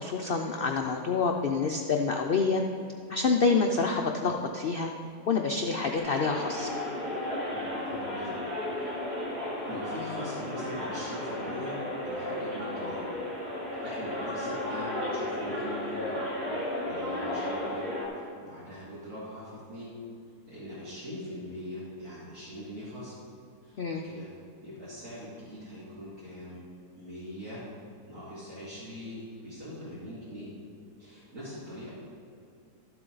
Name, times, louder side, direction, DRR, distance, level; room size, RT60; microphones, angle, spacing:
voice 1, 0.0-2.6 3.1-4.9 5.3-6.7 23.8-24.0, left 4 dB, 70° left, 2 dB, 0.5 m, -27 dB
sound 1, 6.0-18.1, left 1 dB, 20° right, 2.8 m, -34 dB
voice 2, 7.5-8.4 8.7-9.1 9.6-13.0 13.8-16.2 16.6-17.9 18.1-19.9 20.5-23.1 23.6-24.3 24.6-26.6 26.9-27.6 28.1-30.5 31.0-31.9, equal, 65° right, -13 dB, 3.3 m, -42 dB
13.0 x 7.7 x 3.9 m, 2.4 s
omnidirectional pair, 1.6 m